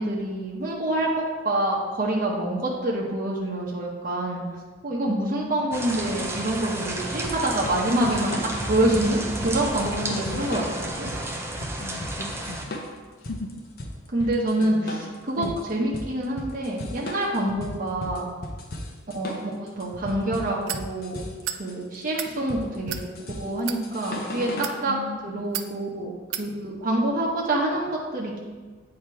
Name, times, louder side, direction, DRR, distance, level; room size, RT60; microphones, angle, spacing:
voice 1, 0.0-4.4 4.8-8.4 8.7-11.1 14.1-15.4 15.7-18.3 19.1-21.2 21.6-23.0 23.4-25.0 25.2-28.4, right 1 dB, 45° right, -3 dB, 0.8 m, -26 dB
voice 2, 5.1-6.4 10.0-10.6 11.8-12.7 13.2-13.5 14.2-14.3 14.6-15.1 15.4-15.6 17.4-17.8 24.9-25.3, left 3 dB, 85° left, 3 dB, 0.5 m, -37 dB
sound 1, 5.7-12.6, right 1 dB, 15° right, 0.5 m, -32 dB
sound 2, 7.2-24.8, left 1 dB, 50° left, 0.7 m, -37 dB
sound 3, 20.7-20.9 21.4-21.6 22.0-22.3 22.9-23.1 23.6-23.8 24.5-24.8 25.5-25.7 26.3-26.5, right 10 dB, 75° right, 0.4 m, -31 dB
8.2 x 2.9 x 4.5 m, 1.4 s
head